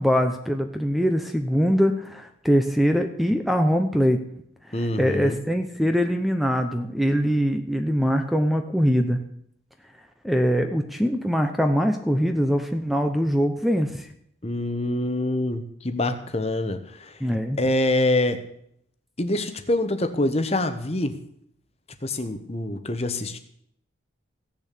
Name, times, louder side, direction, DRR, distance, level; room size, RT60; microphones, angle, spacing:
voice 1, 0.0-4.2 5.0-9.2 10.2-14.1 17.2-17.6, equal, ahead, 6 dB, 0.9 m, -22 dB
voice 2, 4.7-5.4 14.4-17.2 17.6-18.4 19.2-21.2 22.0-23.4, left 1 dB, 30° left, 9 dB, 1.1 m, -25 dB
16.0 x 7.1 x 8.3 m, 0.70 s
head